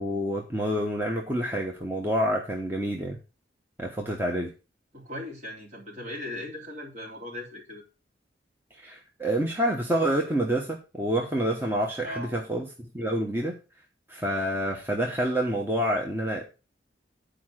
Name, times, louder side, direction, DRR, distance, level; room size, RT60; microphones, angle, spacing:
voice 1, 0.0-3.2 3.8-4.5 8.8-13.6 14.1-16.5, right 1 dB, 10° right, 0 dB, 1.1 m, -28 dB
voice 2, 4.9-7.8 12.0-12.4, left 1 dB, 45° right, -1 dB, 3.3 m, -38 dB
9.4 x 5.0 x 6.3 m, 0.31 s
head